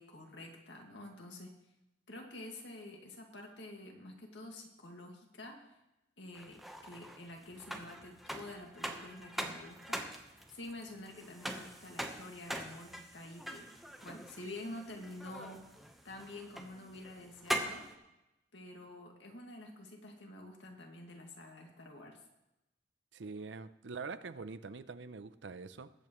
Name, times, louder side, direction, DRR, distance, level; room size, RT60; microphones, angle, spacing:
voice 1, 0.0-1.5 2.1-5.8 6.2-10.1 10.5-13.7 14.0-15.7 16.0-17.9 18.5-22.2, left 1 dB, 80° left, 1 dB, 2.0 m, -48 dB
sound 1, 6.3-17.9, equal, ahead, 1.0 m, -43 dB
voice 2, 23.1-25.9, right 4 dB, 80° right, 13 dB, 0.6 m, -44 dB
21.0 x 8.5 x 3.1 m, 0.92 s
head